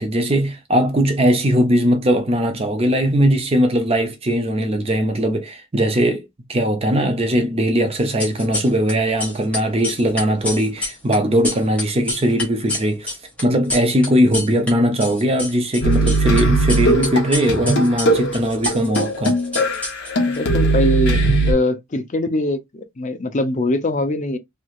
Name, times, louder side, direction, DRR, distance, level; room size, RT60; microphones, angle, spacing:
voice 1, 0.0-13.2 13.4-19.3, equal, 25° right, 0.5 m, -19 dB
sound 1, 8.0-8.9 9.2-14.7 15.0-16.4 16.7-20.4, left 2 dB, 5° left, 1.2 m, -28 dB
sound 2, 15.8-21.5, right 2 dB, 50° left, 1.0 m, -19 dB
voice 2, 20.3-21.2 21.5-24.4, left 1 dB, 35° left, 0.5 m, -22 dB
3.1 x 2.9 x 2.3 m
head